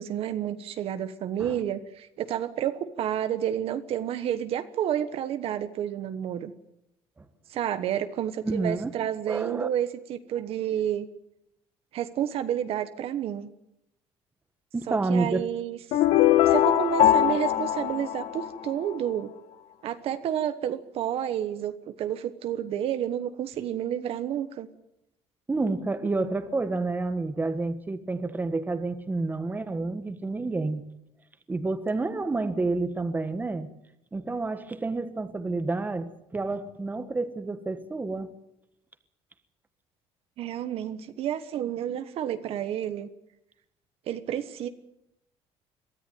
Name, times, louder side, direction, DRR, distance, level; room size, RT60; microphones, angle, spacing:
voice 1, 0.0-6.5 7.5-11.1 11.9-13.5 14.9-15.8 16.4-19.3 19.8-24.7 40.4-43.1 44.1-44.7, right 10 dB, 60° right, 1.2 m, -30 dB
voice 2, 8.4-8.9 9.3-9.7 14.7-15.5 25.5-30.8 31.5-33.7 34.1-38.3, right 3 dB, 15° right, 1.5 m, -29 dB
sound 1, 15.9-19.0, left 11 dB, 70° left, 1.4 m, -21 dB
23.0 x 14.0 x 9.3 m
cardioid pair, 130°, 11 cm